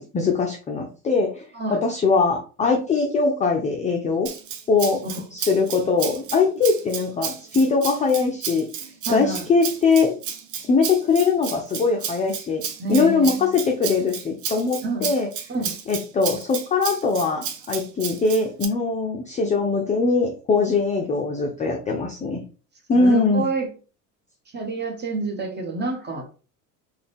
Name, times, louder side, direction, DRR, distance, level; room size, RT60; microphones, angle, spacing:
voice 1, 0.0-4.3 4.7-5.0 5.3-8.6 9.1-10.1 10.6-12.6 12.9-15.3 15.9-22.4 22.9-23.4, left 4 dB, 15° left, 2 dB, 0.4 m, -21 dB
Rattle (instrument), 4.3-18.7, right 8 dB, 40° right, 0.7 m, -33 dB
voice 2, 9.1-9.4 12.8-13.6 14.8-15.1 15.5-15.8 22.9-23.7 24.5-26.3, right 3 dB, 20° right, 3 dB, 1.1 m, -28 dB
3.8 x 2.3 x 3.4 m, 0.36 s
hypercardioid pair, 80°, 49 cm